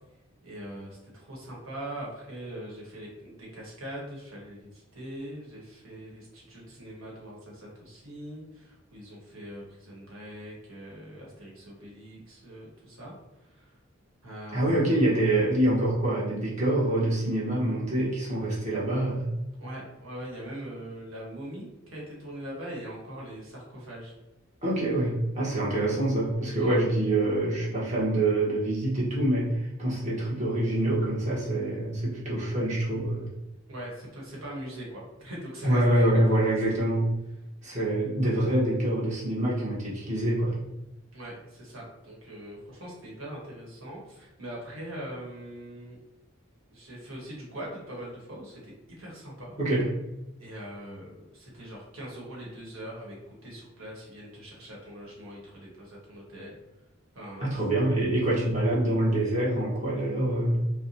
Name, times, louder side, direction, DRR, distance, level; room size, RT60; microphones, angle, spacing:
voice 1, 0.4-13.7 14.2-15.1 19.6-24.1 26.6-26.8 33.7-36.4 36.8-36.9 41.1-46.0 46.7-48.7 49.0-49.6 50.4-56.6 57.1-57.6, right 1 dB, 80° right, -4 dB, 1.4 m, -42 dB
voice 2, 14.5-19.3 24.6-33.3 35.6-37.1 37.6-40.6 49.6-49.9 57.4-60.6, right 1 dB, 35° right, -6 dB, 1.2 m, -25 dB
4.6 x 2.2 x 2.8 m, 0.96 s
head